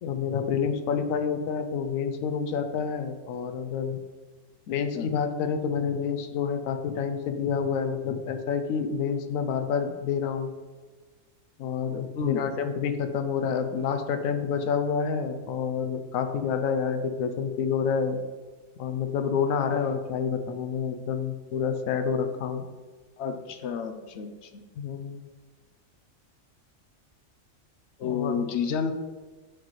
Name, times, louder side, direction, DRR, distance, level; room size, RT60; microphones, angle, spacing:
voice 1, 0.0-4.0 4.7-10.5 11.6-18.2 18.8-22.7 24.8-25.2 28.0-28.5, left 6 dB, 85° left, 8 dB, 1.0 m, -28 dB
voice 2, 23.2-24.6 28.0-28.9, left 6 dB, 65° left, 7 dB, 0.8 m, -30 dB
9.0 x 4.1 x 3.1 m, 1.3 s
omnidirectional pair, 1.4 m